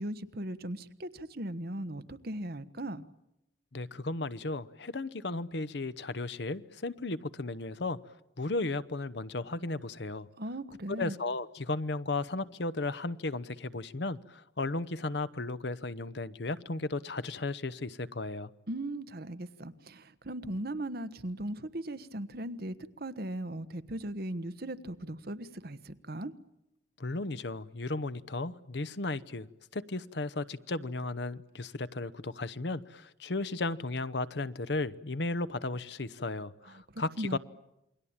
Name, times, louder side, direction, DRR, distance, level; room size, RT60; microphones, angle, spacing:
voice 1, 0.0-3.1 10.4-11.2 18.7-26.3 36.9-37.4, right 1 dB, 55° right, 12 dB, 1.3 m, -38 dB
voice 2, 3.7-8.0 8.4-10.3 11.0-18.5 27.0-29.5 29.7-37.4, left 2 dB, 65° left, 15 dB, 0.9 m, -35 dB
28.0 x 22.5 x 8.8 m, 0.86 s
head